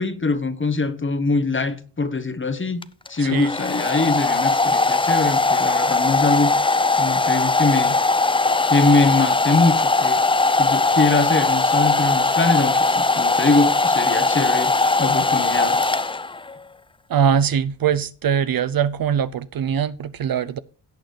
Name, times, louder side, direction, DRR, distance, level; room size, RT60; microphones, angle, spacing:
voice 1, 0.0-2.8 3.1-6.5 7.0-8.0 8.7-10.2 10.6-15.8, left 3 dB, 30° left, 1.2 m, -22 dB
Domestic sounds home sounds, 2.8-16.5, left 3 dB, 10° left, 0.4 m, -20 dB
voice 2, 3.2-3.5 17.1-20.6, right 8 dB, 55° right, 0.6 m, -22 dB
17.5 x 6.4 x 3.2 m
cardioid pair, 80°, 43 cm